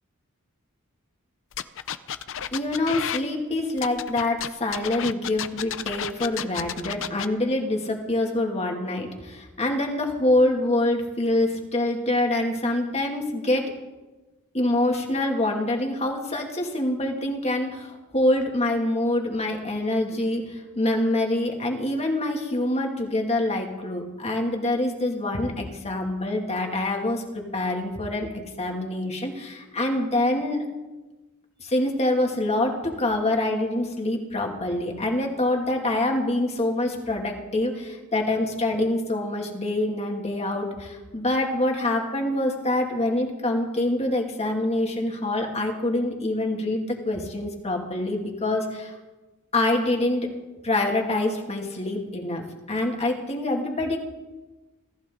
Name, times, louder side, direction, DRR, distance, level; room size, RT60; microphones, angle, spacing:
sound 1, 1.5-3.2 3.8-7.3, left 9 dB, 65° left, 0.7 m, -32 dB
voice 1, 2.5-13.6 14.5-28.3 28.6-30.6 31.6-48.9 49.5-50.3 50.6-54.0, left 1 dB, 30° left, 2 dB, 2.5 m, -25 dB
23.5 x 14.5 x 3.9 m, 1.2 s
head